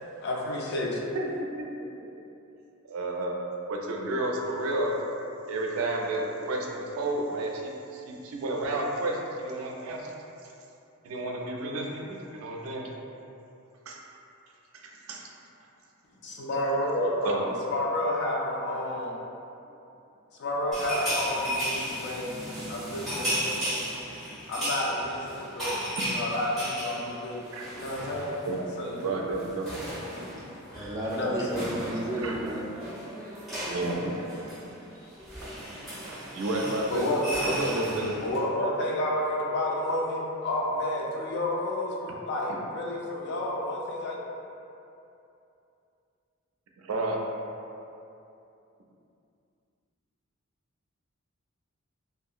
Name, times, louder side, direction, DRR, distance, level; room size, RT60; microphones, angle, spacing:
voice 1, 0.2-1.0 16.2-19.1 20.4-22.4 22.7-23.7 24.5-28.3 28.8-29.1 31.1-31.5 36.0-36.1 36.9-37.3 38.2-44.2, left 1 dB, 55° left, -3 dB, 0.4 m, -30 dB
voice 2, 2.9-3.4 3.7-5.0 5.5-10.1 11.0-12.9 13.9-14.0 14.7-15.3 17.2-17.4 26.0-26.1 27.5-27.7 28.5-28.6 29.0-29.7 32.2-32.4 33.6-34.1 35.4-35.6 36.0-37.1 37.4-38.2 46.8-47.2, right 2 dB, 85° right, 0 dB, 0.4 m, -31 dB
sound 1, 20.7-28.6 28.9-29.1 29.3-38.4, equal, ahead, 1.2 m, -35 dB
voice 3, 30.7-32.6, right 1 dB, 15° right, -6 dB, 0.4 m, -32 dB
2.7 x 2.4 x 2.4 m, 2.7 s
head